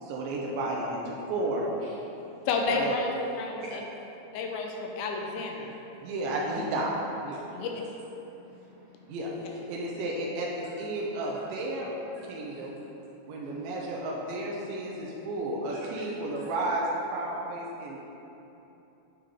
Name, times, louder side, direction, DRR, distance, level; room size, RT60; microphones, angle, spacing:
voice 1, 0.0-1.7 2.7-2.9 6.0-7.5 9.1-12.8 13.3-18.0, right 1 dB, 85° right, -3 dB, 2.1 m, -32 dB
voice 2, 2.5-3.1 3.4-3.8 4.3-5.7 7.5-7.7, left 3 dB, 80° left, 1 dB, 2.4 m, -30 dB
voice 3, 8.2-9.2 11.3-11.4 12.4-12.7 13.4-13.7 15.7-16.0 16.4-16.5, right 1 dB, 65° right, -8 dB, 1.9 m, -51 dB
8.8 x 3.6 x 3.4 m, 3.0 s
omnidirectional pair, 4.4 m